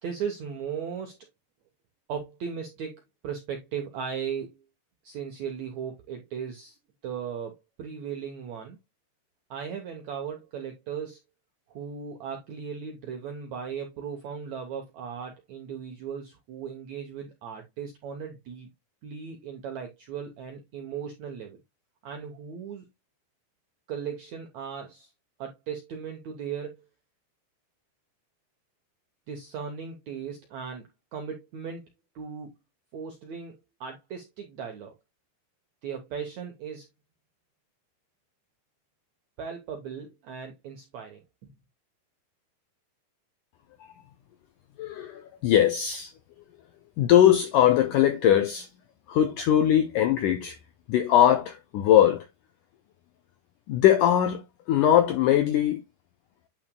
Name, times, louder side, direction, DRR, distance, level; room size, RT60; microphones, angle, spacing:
voice 1, 0.0-1.2 2.1-4.6 5.0-6.8 7.0-8.8 9.5-11.2 11.7-18.7 19.0-21.6 22.0-22.9 23.9-25.1 25.4-26.8 29.3-31.9 32.1-32.5 32.9-34.9 35.8-36.9 39.4-41.5, right 7 dB, 75° right, 1.6 m, -37 dB
voice 2, 44.8-46.1 47.0-48.7 49.1-50.6 50.9-52.3 53.7-54.4 54.7-55.8, left 11 dB, 80° left, 1.8 m, -21 dB
9.2 x 5.9 x 2.2 m
omnidirectional pair, 4.7 m